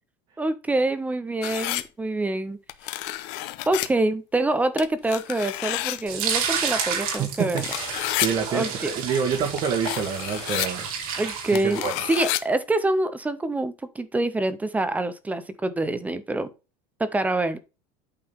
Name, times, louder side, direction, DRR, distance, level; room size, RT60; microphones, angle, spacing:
voice 1, 0.4-2.6 2.9-3.2 3.7-7.6 8.5-8.9 11.2-11.8 12.1-16.5 17.0-17.6, right 2 dB, 10° right, 0.5 m, -26 dB
sound 1, 1.4-1.8 2.7-3.9 4.8-6.0 7.1-7.2 7.5-8.3 9.6-9.7 9.9-10.7 11.6-12.4, left 17 dB, 60° left, 0.7 m, -29 dB
sound 2, 6.1-12.1, right 6 dB, 85° right, 2.9 m, -30 dB
voice 2, 7.2-7.6 8.2-10.9 11.5-11.9, right 7 dB, 35° right, 1.3 m, -27 dB
8.7 x 3.8 x 5.4 m
cardioid pair, 160°, 18 cm